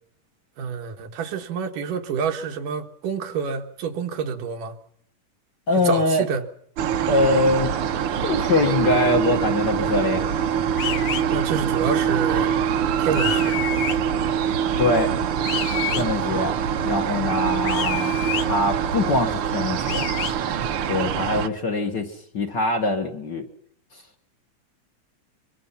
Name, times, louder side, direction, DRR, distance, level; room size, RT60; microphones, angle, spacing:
voice 1, 0.6-4.8 5.8-6.4 11.3-12.5 13.0-13.6, right 6 dB, 85° right, 3.3 m, -28 dB
voice 2, 5.7-6.2 7.1-7.7 8.2-10.2 14.8-15.1 15.9-16.6 16.8-20.1 20.9-23.5, left 2 dB, 40° left, 1.8 m, -23 dB
sound 1, 6.8-21.5, right 8 dB, 65° right, 1.5 m, -24 dB
sound 2, 10.8-11.2 13.2-14.0 15.4-16.0 17.6-18.5 19.9-20.3, left 10 dB, 85° left, 2.9 m, -28 dB
24.5 x 24.0 x 5.8 m
omnidirectional pair, 3.7 m